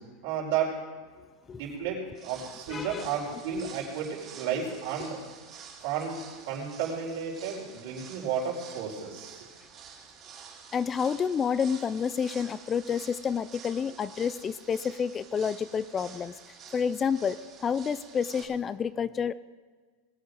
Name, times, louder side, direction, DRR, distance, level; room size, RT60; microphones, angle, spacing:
voice 1, 0.2-0.7 1.5-5.2 5.8-6.2 6.5-9.5, right 7 dB, 65° right, -1 dB, 4.6 m, -32 dB
sound 1, 2.1-18.4, right 6 dB, 35° right, 2.8 m, -49 dB
voice 2, 2.7-3.4 10.7-16.3 16.7-19.3, left 7 dB, 25° left, 17 dB, 0.4 m, -29 dB
21.0 x 8.3 x 5.2 m, 1.5 s
supercardioid pair, 130°, 0 cm